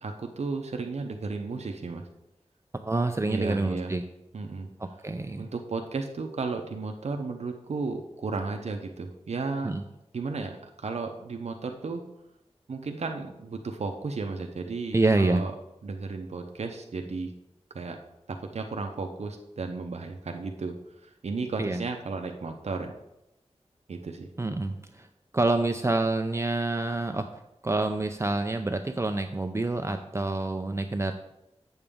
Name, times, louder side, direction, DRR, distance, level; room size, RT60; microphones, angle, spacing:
voice 1, 0.0-2.0 3.3-3.9 4.3-4.7 5.4-9.7 10.1-12.0 12.7-15.5 15.8-17.3 17.7-18.0 18.3-20.7 21.0-22.9 23.9-24.3, right 4 dB, 75° right, 4 dB, 0.7 m, -34 dB
voice 2, 2.7-4.0 4.8-5.5 9.6-9.8 14.9-15.4 21.6-21.8 24.4-25.1 25.3-27.3 27.6-31.1, right 2 dB, 25° right, 6 dB, 0.4 m, -27 dB
8.0 x 6.9 x 3.6 m, 0.88 s
wide cardioid pair, 70°, 11 cm